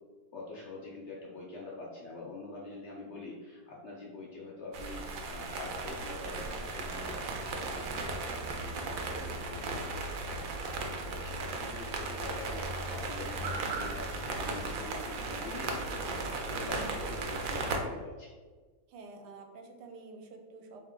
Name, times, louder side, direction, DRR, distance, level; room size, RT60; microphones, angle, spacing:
voice 1, 0.3-18.3, left 3 dB, 70° left, -3 dB, 0.6 m, -45 dB
sound 1, 4.7-17.8, right 3 dB, 65° right, 0.9 m, -36 dB
voice 2, 16.5-16.9 18.9-20.8, right 3 dB, 90° right, 4 dB, 1.2 m, -49 dB
3.6 x 2.8 x 3.7 m, 1.4 s
omnidirectional pair, 1.7 m